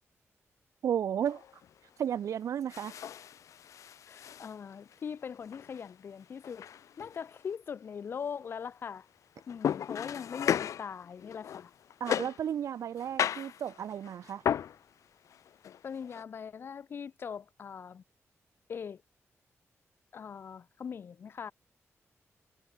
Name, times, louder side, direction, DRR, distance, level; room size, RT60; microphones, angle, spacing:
voice 1, 0.8-1.4 2.0-2.9 12.0-14.4, right 9 dB, 80° right, 0.9 m, -33 dB
sound 1, 1.2-1.7 2.7-5.0 5.4-5.9 6.4-7.6 9.4-12.5 13.0-14.8 15.3-16.2, left 9 dB, 85° left, 0.9 m, -35 dB
voice 2, 4.1-6.7 7.0-9.1 9.5-11.7 15.8-18.0 18.7-19.0 20.1-21.5, left 7 dB, 45° left, 0.5 m, -41 dB
wide cardioid pair, 175°, 5 cm